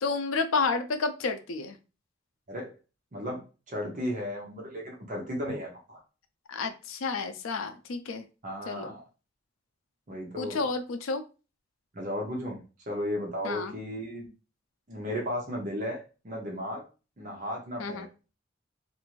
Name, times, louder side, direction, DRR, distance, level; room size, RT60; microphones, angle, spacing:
voice 1, 0.0-1.8 6.5-8.2 8.7-8.9 10.4-11.2 13.4-13.7 17.8-18.1, left 4 dB, 90° left, 8 dB, 0.4 m, -30 dB
voice 2, 3.1-6.0 8.4-9.0 10.1-10.6 11.9-12.6 12.9-14.3 14.9-16.8 17.2-18.1, equal, 40° right, -1 dB, 0.7 m, -35 dB
2.5 x 2.5 x 3.0 m, 0.32 s
head